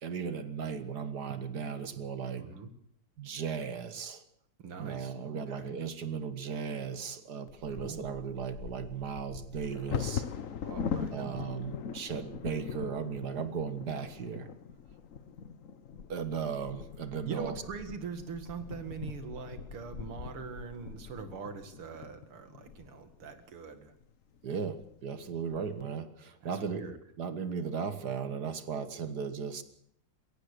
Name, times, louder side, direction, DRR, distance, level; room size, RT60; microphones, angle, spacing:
voice 1, 0.0-2.5 3.2-4.2 4.8-10.3 11.1-14.5 16.1-17.6 24.4-26.8 27.2-29.6, right 6 dB, 50° right, 11 dB, 1.9 m, -36 dB
voice 2, 2.4-2.7 4.6-5.8 7.8-8.0 10.6-11.4 17.2-23.9 26.4-27.0, right 5 dB, 80° right, 8 dB, 3.0 m, -42 dB
Bird vocalization bird call bird song / Wind / Thunder, 7.5-23.4 24.0-24.1 24.4-24.8 25.3-25.8, left 7 dB, 50° left, 1.1 m, -41 dB
22.0 x 17.5 x 6.8 m, 0.70 s
omnidirectional pair, 2.4 m